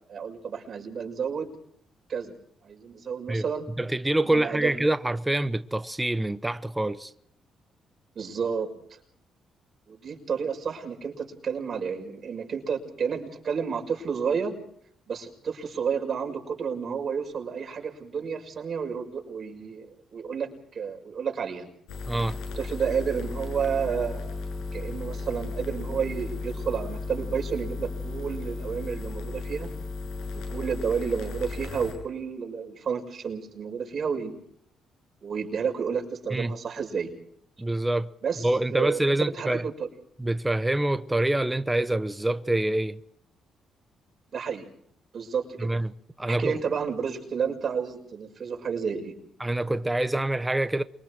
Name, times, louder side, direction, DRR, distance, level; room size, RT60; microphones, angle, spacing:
voice 1, 0.1-1.5 2.1-2.3 2.6-3.7 4.3-4.7 8.1-9.0 9.9-14.5 15.1-21.7 22.6-24.4 24.7-29.7 30.5-34.4 35.2-37.1 38.2-39.7 44.3-44.7 45.1-45.7 46.2-49.2, right 6 dB, 50° right, 6.1 m, -31 dB
voice 2, 3.8-7.1 22.1-22.4 36.3-36.6 37.6-38.1 38.4-39.6 40.2-43.0 45.6-45.9 46.2-46.6 49.4-50.8, right 1 dB, 10° right, 0.9 m, -26 dB
sound 1, 21.9-31.9, left 3 dB, 90° left, 7.4 m, -35 dB
28.0 x 24.0 x 4.8 m
cardioid pair, 90°, 0 cm